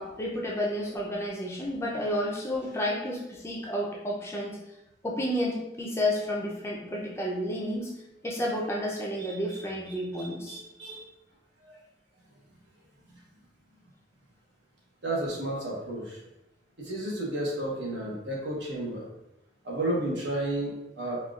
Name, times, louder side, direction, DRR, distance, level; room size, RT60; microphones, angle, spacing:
voice 1, 0.0-4.6 5.0-7.9 8.2-10.6, equal, 15° left, -2 dB, 0.4 m, -31 dB
voice 2, 9.2-11.0 11.6-11.8 15.0-16.2 16.8-19.0 19.6-21.2, right 1 dB, 85° right, -3 dB, 1.0 m, -33 dB
4.3 x 2.3 x 2.3 m, 0.90 s
head